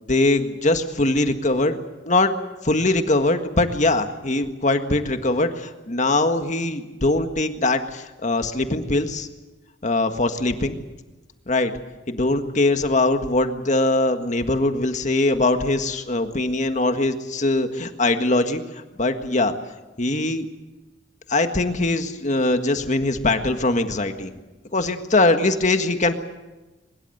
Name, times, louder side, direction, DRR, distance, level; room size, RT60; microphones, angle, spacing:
voice 1, 0.1-2.3 2.6-9.3 9.8-10.8 11.5-11.7 12.1-18.6 19.0-19.5 20.0-20.5 21.3-24.3 24.7-26.1, left 2 dB, 45° left, 7 dB, 1.7 m, -21 dB
23.5 x 21.5 x 8.0 m, 1.1 s
head